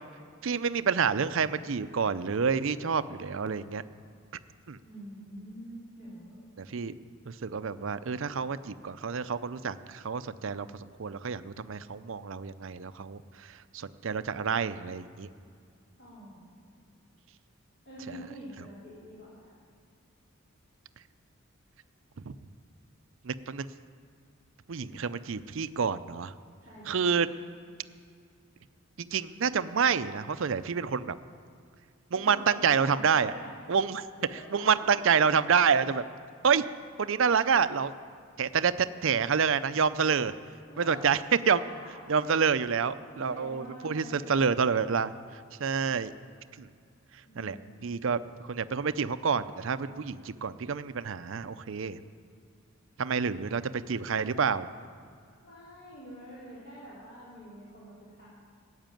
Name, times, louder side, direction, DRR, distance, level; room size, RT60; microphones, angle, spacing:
voice 1, 0.4-3.8 4.7-4.8 6.6-6.9 7.2-15.3 18.1-18.2 22.3-22.4 23.2-23.7 24.7-26.3 26.9-27.3 29.0-31.2 32.1-33.3 33.7-34.1 34.5-36.0 36.4-36.6 37.0-37.9 38.4-40.3 40.8-41.2 41.5-41.6 42.1-46.1 46.6-46.7 47.1-47.6 47.8-52.0 53.0-54.7, right 6 dB, 60° right, 14 dB, 0.5 m, -28 dB
voice 2, 4.8-6.4 16.0-16.7 17.8-19.6 24.8-25.0 26.7-27.1 32.1-33.5 34.2-34.9 40.7-41.1 41.5-42.3 43.1-44.5 47.2-47.7 55.4-58.3, equal, 55° left, -10 dB, 3.8 m, -46 dB
14.5 x 8.1 x 9.1 m, 2.3 s
head